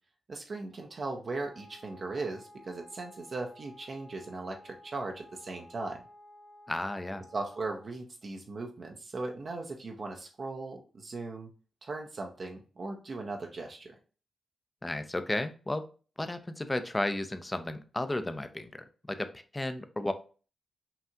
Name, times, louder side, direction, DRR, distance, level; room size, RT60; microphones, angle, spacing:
voice 1, 0.3-6.0 7.3-11.5 11.8-13.9, right 3 dB, 55° right, 2 dB, 0.6 m, -38 dB
Wind instrument woodwind instrument, 1.3-7.9, left 1 dB, 75° left, 1.3 m, -54 dB
voice 2, 6.7-7.2 14.8-15.8 16.2-20.1, left 1 dB, 20° left, 10 dB, 0.5 m, -33 dB
5.7 x 2.4 x 2.8 m, 0.37 s
cardioid pair, 65°, 0 cm